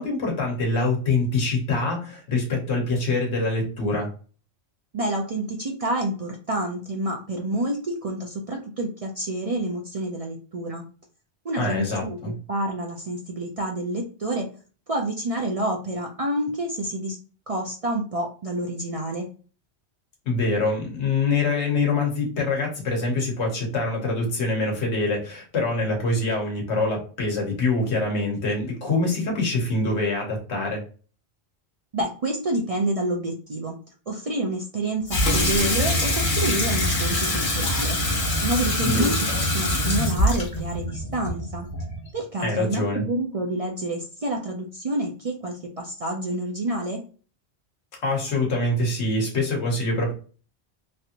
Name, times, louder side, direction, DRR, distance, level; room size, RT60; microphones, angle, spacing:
voice 1, 0.0-4.1 11.6-12.3 20.2-30.8 38.8-39.1 42.4-43.0 48.0-50.1, left 2 dB, 90° left, 0 dB, 1.3 m, -25 dB
voice 2, 4.9-10.8 11.4-12.2 12.5-14.5 14.9-17.2 17.5-19.3 31.9-33.8 34.1-38.0 38.4-41.7 42.1-47.0, right 1 dB, 45° right, 0 dB, 0.5 m, -28 dB
Water tap faucet / Sink (filling or washing), 35.1-42.1, left 1 dB, 55° left, 1.1 m, -24 dB
3.2 x 2.5 x 2.8 m, 0.38 s
omnidirectional pair, 1.1 m